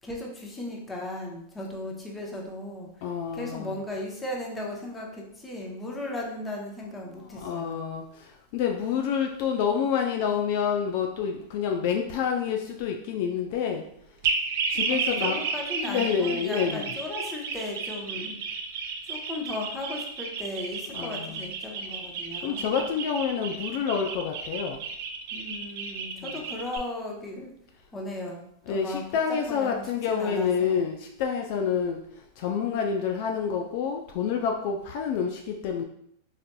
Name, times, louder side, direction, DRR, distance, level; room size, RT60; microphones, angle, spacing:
voice 1, 0.0-3.0 3.3-7.9 14.7-18.4 19.0-22.7 25.3-27.5 27.9-29.0 29.3-30.8, left 1 dB, 15° left, -1 dB, 0.8 m, -36 dB
voice 2, 3.0-3.7 7.3-13.8 14.7-15.4 15.9-16.9 20.9-21.5 22.4-24.8 26.2-26.4 28.7-32.0 32.4-35.8, left 7 dB, 60° left, 2 dB, 0.3 m, -28 dB
sound 1, 14.2-26.8, right 5 dB, 65° right, 0.5 m, -32 dB
4.1 x 2.5 x 2.2 m, 0.72 s
hypercardioid pair, 115°, 0 cm